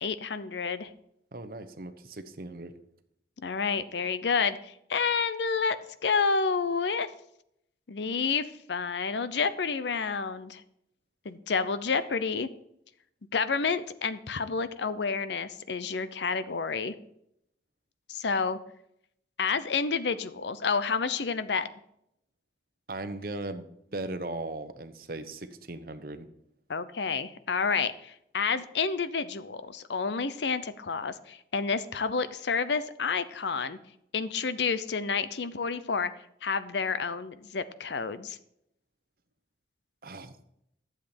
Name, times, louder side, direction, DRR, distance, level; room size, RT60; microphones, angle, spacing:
voice 1, 0.0-0.9 3.4-5.8 6.0-7.1 7.9-10.6 11.2-12.5 13.3-16.9 18.1-18.6 19.4-21.7 26.7-33.8 34.1-36.1 36.4-38.4, left 5 dB, 75° left, 14 dB, 0.7 m, -29 dB
voice 2, 1.3-2.7 22.9-26.3 40.0-40.3, right 2 dB, 50° right, 10 dB, 0.9 m, -38 dB
11.5 x 7.6 x 4.3 m, 0.75 s
head